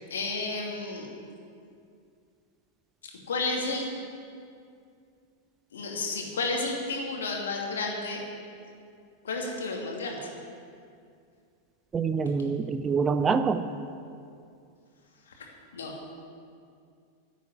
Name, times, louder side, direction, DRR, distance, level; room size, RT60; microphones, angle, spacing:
voice 1, 0.1-1.1 3.3-3.9 5.7-8.2 9.2-10.3 15.4-15.5 15.7-16.0, left 3 dB, 65° left, 0 dB, 2.6 m, -31 dB
voice 2, 11.9-13.6, right 5 dB, 20° right, 11 dB, 0.6 m, -25 dB
11.0 x 8.4 x 10.0 m, 2.4 s
figure-of-eight pair, 90°, 0 cm